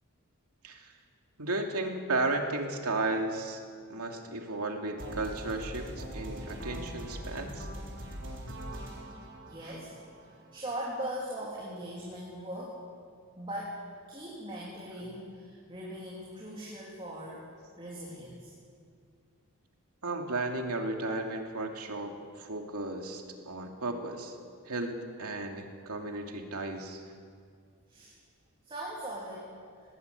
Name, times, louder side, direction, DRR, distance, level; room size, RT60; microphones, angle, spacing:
voice 1, 1.4-3.6 3.9-7.7 9.6-9.7 20.0-22.1 22.4-24.4 24.6-27.0, right 2 dB, 90° right, 3 dB, 2.6 m, -34 dB
sound 1, 5.0-11.0, right 1 dB, 55° right, 4.6 m, -42 dB
voice 2, 9.5-9.9 10.2-12.8 13.3-13.8 14.1-17.5 17.8-18.5 27.9-28.1 28.6-29.5, right 1 dB, 25° right, -5 dB, 3.4 m, -40 dB
19.5 x 19.5 x 8.3 m, 2.2 s
head